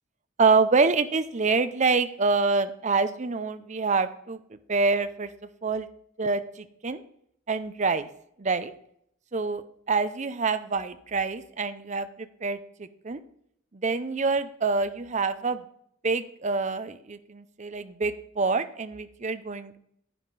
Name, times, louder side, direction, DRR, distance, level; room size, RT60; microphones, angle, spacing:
voice 1, 0.4-4.4 4.7-5.3 5.6-5.9 6.2-7.0 7.5-8.1 8.4-8.7 9.3-13.2 13.7-15.6 16.0-19.8, right 4 dB, 35° right, 11 dB, 0.6 m, -26 dB
10.0 x 9.5 x 4.0 m, 0.69 s
head